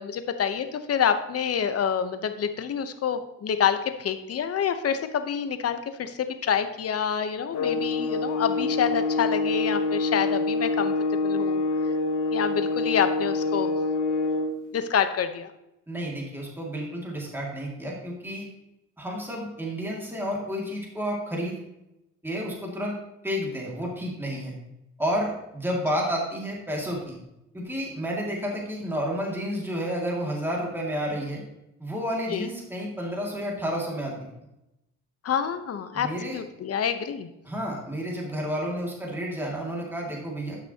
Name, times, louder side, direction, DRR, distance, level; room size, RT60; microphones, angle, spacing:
voice 1, 0.0-11.6 12.3-13.7 14.7-15.5 32.3-32.5 35.2-37.3, left 8 dB, 55° left, 9 dB, 0.9 m, -27 dB
sound 1, 7.5-14.6, left 3 dB, 80° left, 0.9 m, -26 dB
voice 2, 15.9-18.5 19.0-21.6 22.2-23.0 23.2-24.5 25.0-27.2 27.5-31.4 31.8-34.3 35.9-36.4 37.4-40.6, equal, 5° right, -2 dB, 2.2 m, -30 dB
11.5 x 6.0 x 2.9 m, 0.90 s
cardioid pair, 90°, 30 cm